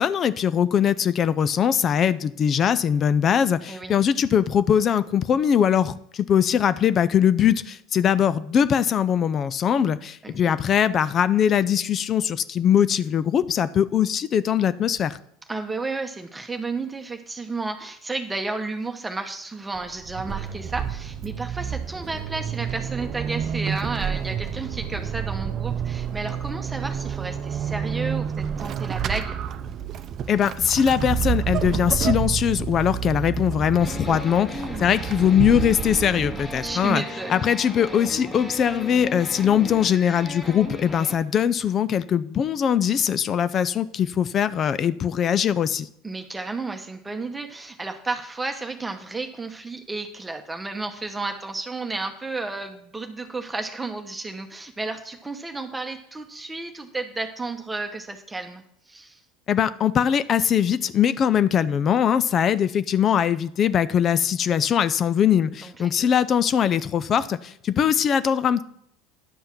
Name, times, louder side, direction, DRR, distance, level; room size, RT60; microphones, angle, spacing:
voice 1, 0.0-15.2 30.3-37.0 37.3-45.9 59.5-68.6, left 8 dB, 40° left, 16 dB, 0.5 m, -21 dB
voice 2, 15.5-29.4 36.6-37.4 46.0-59.2 65.6-66.1, right 3 dB, 15° right, 5 dB, 1.0 m, -32 dB
Vehicle / Accelerating revving vroom / Squeak, 19.8-37.0, right 8 dB, 45° right, 0.6 m, -29 dB
sound 1, 33.8-41.2, left 2 dB, 20° left, 1.9 m, -36 dB
10.0 x 5.5 x 5.9 m, 0.70 s
hypercardioid pair, 85°, 0 cm